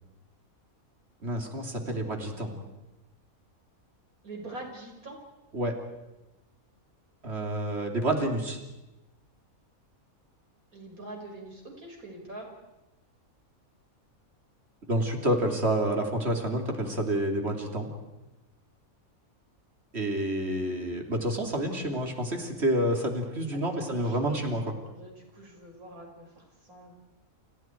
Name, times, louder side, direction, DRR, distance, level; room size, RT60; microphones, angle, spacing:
voice 1, 1.2-2.6 5.5-5.8 7.2-8.6 14.9-17.9 19.9-24.7, right 1 dB, 50° right, 3 dB, 3.5 m, -29 dB
voice 2, 4.2-5.2 10.7-12.5 23.5-27.0, right 2 dB, 85° right, 1 dB, 6.2 m, -44 dB
30.0 x 28.5 x 4.7 m, 1.0 s
omnidirectional pair, 1.5 m